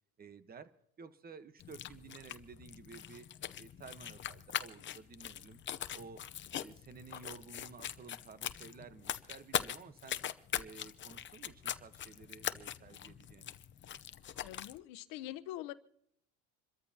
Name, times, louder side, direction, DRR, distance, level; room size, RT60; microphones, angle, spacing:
voice 1, 0.2-0.7 1.0-3.3 3.5-5.6 5.9-6.2 6.5-10.2 10.5-13.5, right 5 dB, 25° right, 1.2 m, -53 dB
sound 1, 1.6-14.8, left 10 dB, 35° left, 0.8 m, -42 dB
voice 2, 14.4-15.7, left 14 dB, 80° left, 1.0 m, -44 dB
27.5 x 13.5 x 2.9 m
cardioid pair, 120°, 33 cm